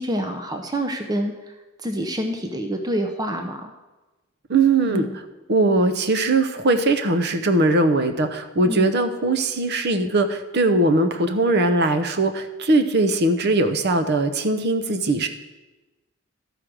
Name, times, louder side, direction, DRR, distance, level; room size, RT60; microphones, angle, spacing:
voice 1, 0.0-1.3 1.8-3.7 4.9-5.2 8.6-8.9, equal, 20° right, 4 dB, 0.7 m, -27 dB
voice 2, 4.5-5.1 5.5-15.3, right 2 dB, 55° right, 8 dB, 0.8 m, -20 dB
12.5 x 5.0 x 6.1 m, 1.1 s
head